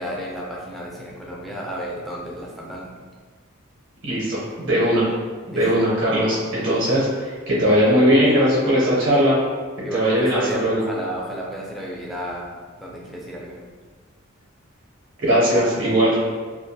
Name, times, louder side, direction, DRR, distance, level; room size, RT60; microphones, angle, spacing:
voice 1, 0.0-2.9 5.5-5.8 9.8-12.5 12.8-13.6, equal, ahead, -4 dB, 0.3 m, -32 dB
voice 2, 4.0-5.1 5.5-9.4 9.9-10.8 15.2-16.2, equal, 55° right, -7 dB, 0.6 m, -19 dB
2.3 x 2.2 x 2.6 m, 1.5 s
head